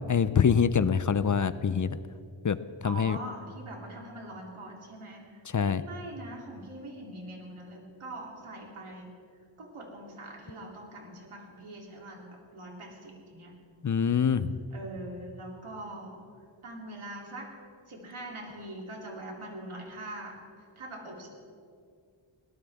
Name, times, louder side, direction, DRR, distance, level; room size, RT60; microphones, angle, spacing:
voice 1, 0.1-1.9 2.4-2.6 2.8-3.2 5.5-5.8 13.8-14.6, left 7 dB, 40° left, 14 dB, 0.6 m, -24 dB
voice 2, 2.8-9.1 9.6-13.5 14.7-16.2 16.6-17.5 17.9-21.3, right 1 dB, 85° right, -1 dB, 3.3 m, -43 dB
21.5 x 18.0 x 3.6 m, 2.3 s
wide cardioid pair, 85°, 48 cm